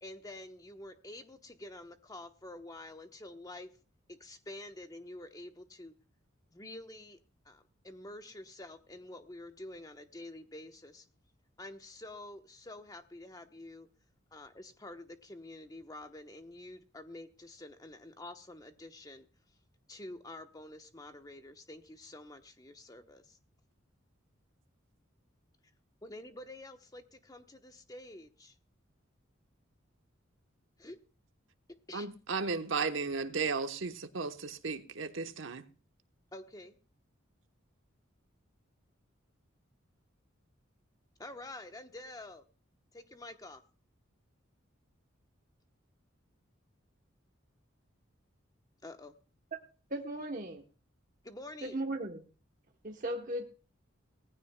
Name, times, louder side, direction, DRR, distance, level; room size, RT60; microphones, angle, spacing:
voice 1, 0.0-3.7 4.1-5.9 6.5-7.2 7.4-11.0 11.6-13.9 14.3-19.3 19.9-23.4 26.0-28.5 30.8-31.0 31.9-32.1 36.3-36.8 41.2-42.4 42.9-43.6 48.8-49.2 51.2-51.8, left 1 dB, 20° left, 1.0 m, -48 dB
voice 2, 31.9-35.6, right 4 dB, 75° right, 1.1 m, -35 dB
voice 3, 49.9-50.6 51.6-52.2 52.8-53.5, right 1 dB, 40° right, 1.0 m, -36 dB
18.5 x 15.5 x 2.2 m
head